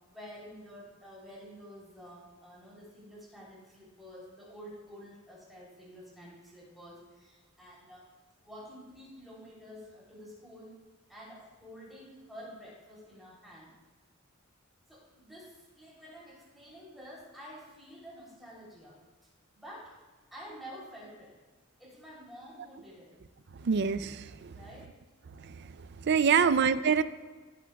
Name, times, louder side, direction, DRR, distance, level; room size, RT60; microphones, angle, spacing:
voice 1, 0.1-8.1 8.4-10.7 11.1-13.7 14.9-20.0 20.3-21.3 21.8-23.2 24.5-24.9 26.3-26.6, equal, ahead, -6 dB, 3.3 m, -49 dB
voice 2, 23.5-24.6 25.4-27.0, right 6 dB, 55° right, 13 dB, 0.4 m, -26 dB
17.0 x 8.3 x 2.3 m, 1.4 s
head